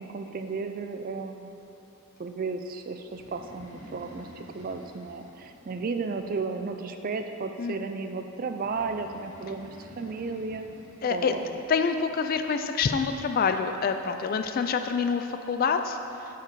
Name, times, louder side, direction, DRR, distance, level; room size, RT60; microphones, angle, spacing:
voice 1, 0.0-1.5 2.2-10.6 11.1-11.5, right 4 dB, 40° right, 7 dB, 0.3 m, -34 dB
Breathing, 3.0-6.7 8.5-11.7, equal, 85° right, 1.6 m, -50 dB
voice 2, 11.0-11.4 11.7-16.0, left 5 dB, 40° left, 7 dB, 0.3 m, -26 dB
8.4 x 4.8 x 4.7 m, 3.0 s
head